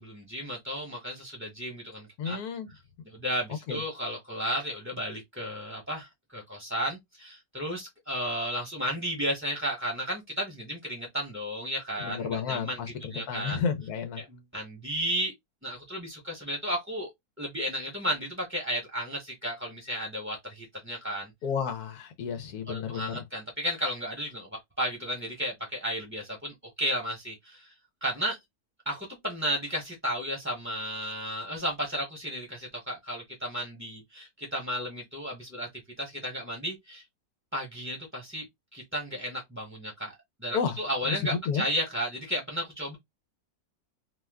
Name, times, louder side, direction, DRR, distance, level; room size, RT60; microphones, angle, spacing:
voice 1, 0.0-2.4 3.0-12.8 13.1-13.6 14.2-15.3 15.6-17.1 17.4-21.3 22.7-27.7 28.0-28.4 28.9-35.7 36.0-37.0 37.5-38.5 38.7-40.1 40.4-43.0, equal, 10° right, 0.7 m, -33 dB
voice 2, 2.2-2.7 3.7-3.8 12.0-14.2 21.4-23.2 40.5-40.8 41.1-41.6, left 6 dB, 90° left, 1.2 m, -31 dB
2.8 x 2.2 x 3.4 m
omnidirectional pair, 1.6 m